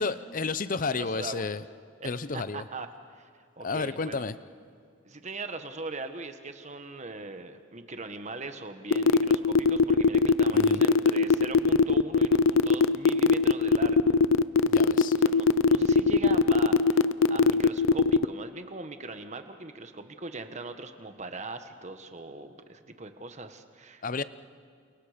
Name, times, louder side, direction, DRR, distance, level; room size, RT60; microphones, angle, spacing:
voice 1, 0.0-1.6 2.0-2.6 3.6-4.4 10.5-10.8 14.6-15.2 24.0-24.2, left 4 dB, 40° left, 15 dB, 0.7 m, -31 dB
voice 2, 0.9-1.5 2.0-2.9 3.1-3.3 3.6-4.3 5.0-14.2 15.1-24.2, right 3 dB, 35° right, 8 dB, 1.4 m, -40 dB
sound 1, 8.9-18.2, left 5 dB, 80° left, 0.6 m, -20 dB
29.0 x 28.5 x 5.1 m, 2.3 s
head